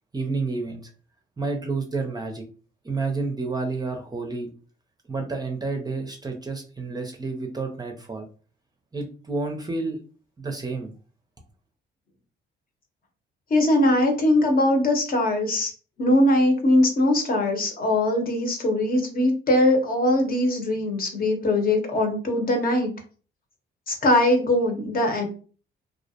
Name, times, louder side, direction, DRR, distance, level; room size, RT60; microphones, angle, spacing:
voice 1, 0.1-0.8 1.4-2.4 2.8-4.5 5.1-8.3 8.9-10.0 10.4-10.9, right 3 dB, 20° right, 3 dB, 0.5 m, -30 dB
voice 2, 13.5-15.7 16.0-22.9 23.9-25.2, left 1 dB, 45° left, 3 dB, 0.8 m, -21 dB
2.4 x 2.0 x 2.7 m, 0.38 s
cardioid pair, 90°, 20 cm